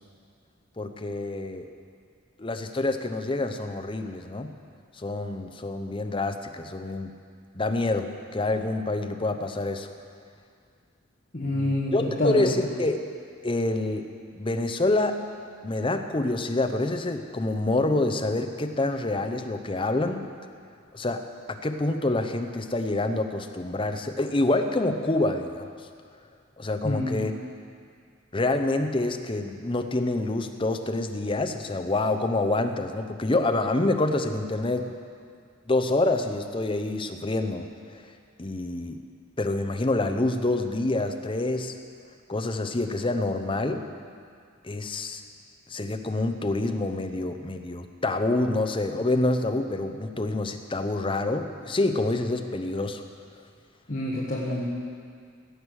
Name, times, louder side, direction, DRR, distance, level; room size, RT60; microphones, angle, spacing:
voice 1, 0.8-1.7 2.4-4.5 5.0-7.1 7.5-9.9 11.4-13.0 13.4-14.1 14.4-15.2 15.6-20.3 20.9-25.7 26.6-27.3 28.3-34.9 35.7-37.7 37.9-38.0 38.4-39.0 39.4-41.7 42.3-43.8 44.6-45.2 45.7-53.0, left 2 dB, 25° left, 6 dB, 0.7 m, -27 dB
voice 2, 11.3-12.5 26.8-27.2 53.9-54.7, left 1 dB, 40° left, -5 dB, 1.4 m, -27 dB
16.5 x 8.1 x 6.3 m, 2.2 s
head